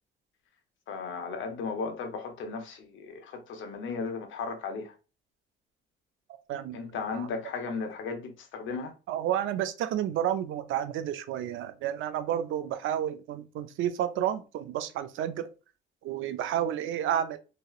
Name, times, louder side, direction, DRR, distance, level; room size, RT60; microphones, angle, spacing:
voice 1, 0.9-4.9 6.7-8.9, left 4 dB, 75° left, 0.8 m, -35 dB
voice 2, 6.5-6.8 7.1-7.3 9.1-15.5 16.0-17.4, right 10 dB, 80° right, 0.5 m, -31 dB
3.0 x 2.8 x 2.3 m
cardioid pair, 90°, 20 cm